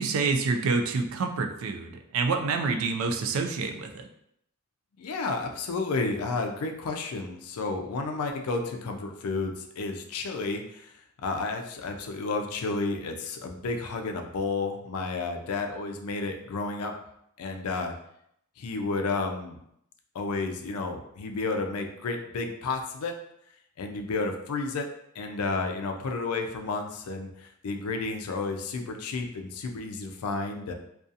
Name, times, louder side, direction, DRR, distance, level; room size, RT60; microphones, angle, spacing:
voice 1, 0.0-4.1, right 4 dB, 70° right, 5 dB, 0.3 m, -27 dB
voice 2, 5.0-10.9 11.2-16.9 17.4-17.9 18.6-19.6 20.1-23.1 23.8-24.9 25.2-30.7, left 3 dB, 85° left, 4 dB, 0.4 m, -31 dB
2.4 x 2.3 x 2.6 m, 0.74 s
head